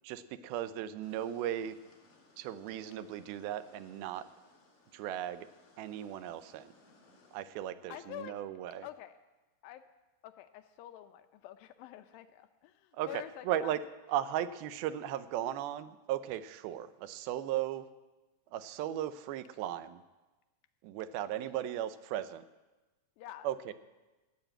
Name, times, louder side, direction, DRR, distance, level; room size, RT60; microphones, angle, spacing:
voice 1, 0.0-1.8 2.4-4.3 4.9-5.5 5.8-6.7 7.3-8.9 12.9-13.8 14.1-17.9 18.5-20.0 20.8-22.4 23.4-23.7, right 11 dB, 85° right, 13 dB, 2.5 m, -36 dB
sound 1, 1.0-7.5, left 2 dB, 60° left, 4.2 m, -64 dB
voice 2, 7.9-8.4 8.8-9.2 9.6-9.8 10.2-13.8 21.4-21.5 23.2-23.5, left 13 dB, 80° left, 9 dB, 2.4 m, -47 dB
14.0 x 8.1 x 8.8 m, 1.1 s
omnidirectional pair, 4.3 m